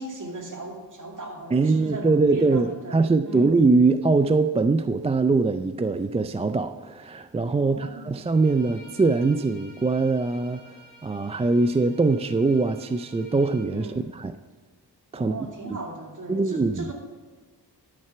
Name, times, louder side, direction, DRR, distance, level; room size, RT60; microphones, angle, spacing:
voice 1, 0.0-3.6 7.5-8.2 13.7-14.1 15.1-16.9, right 2 dB, 45° right, 1 dB, 2.4 m, -37 dB
voice 2, 1.5-10.8 11.0-14.3 15.1-15.3 16.3-16.9, right 3 dB, 15° right, 10 dB, 0.3 m, -22 dB
Bowed string instrument, 8.2-13.7, equal, 85° right, 2.8 m, -51 dB
12.5 x 6.6 x 5.7 m, 1.4 s
cardioid pair, 80°, 43 cm